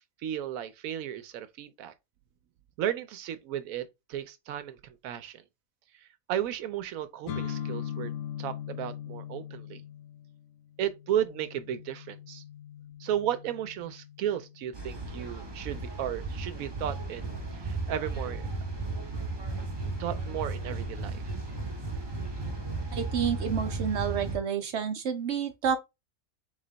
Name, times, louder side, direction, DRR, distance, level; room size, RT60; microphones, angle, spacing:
voice 1, 0.0-1.9 2.8-4.8 5.0-5.4 6.3-8.1 8.4-9.8 10.8-12.4 13.0-18.5 20.0-21.2, right 10 dB, 85° right, 1.0 m, -34 dB
sound 1, 7.3-15.0, left 9 dB, 85° left, 1.1 m, -40 dB
sound 2, 14.7-24.4, right 3 dB, 25° right, 0.7 m, -35 dB
voice 2, 22.9-25.8, right 7 dB, 65° right, 0.8 m, -29 dB
3.4 x 3.2 x 3.9 m
omnidirectional pair, 1.4 m